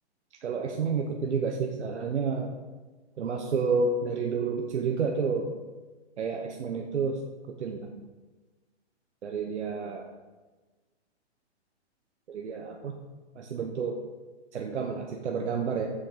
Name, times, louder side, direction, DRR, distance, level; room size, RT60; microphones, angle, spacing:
voice 1, 0.4-2.6 3.2-5.5 6.2-7.2 7.6-7.9 9.2-10.0 12.3-13.0 13.4-14.0 14.5-15.9, right 5 dB, 85° right, 2 dB, 1.1 m, -30 dB
7.7 x 5.8 x 6.1 m, 1.3 s
hypercardioid pair, 145°, 34 cm